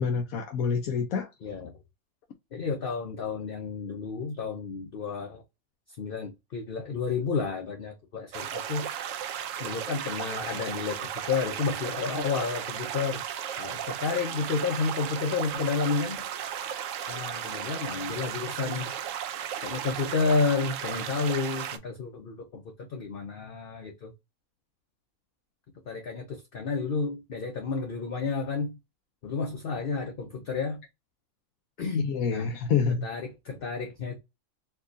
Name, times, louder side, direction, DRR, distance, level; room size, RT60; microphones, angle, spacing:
voice 1, 0.0-1.3 32.0-33.1, left 6 dB, 85° left, 1.1 m, -27 dB
voice 2, 1.4-1.7 2.5-5.4 6.0-8.9 9.6-13.2 13.6-16.2 17.1-18.9 19.6-24.1 25.9-28.8 29.2-30.8 31.8-32.5 33.0-34.2, left 4 dB, 50° left, 0.8 m, -31 dB
sound 1, 8.3-21.8, right 9 dB, 70° right, 0.9 m, -35 dB
4.5 x 2.3 x 2.6 m
omnidirectional pair, 1.4 m